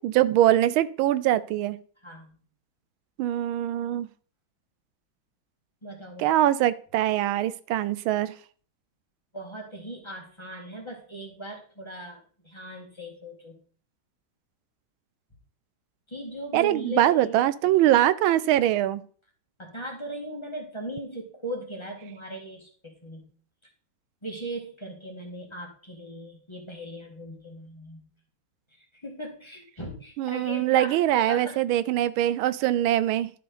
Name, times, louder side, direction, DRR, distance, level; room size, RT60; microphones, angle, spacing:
voice 1, 0.0-1.8 3.2-4.1 6.2-8.3 16.5-19.0 30.2-33.3, right 13 dB, 85° right, 16 dB, 1.4 m, -23 dB
voice 2, 2.0-2.4 5.8-6.3 9.3-13.6 16.1-17.4 17.6-17.7 19.6-23.2 23.6-23.7 24.2-28.0 28.7-31.6, right 1 dB, 15° left, 0 dB, 2.1 m, -39 dB
12.0 x 6.7 x 4.1 m, 0.43 s
omnidirectional pair, 2.2 m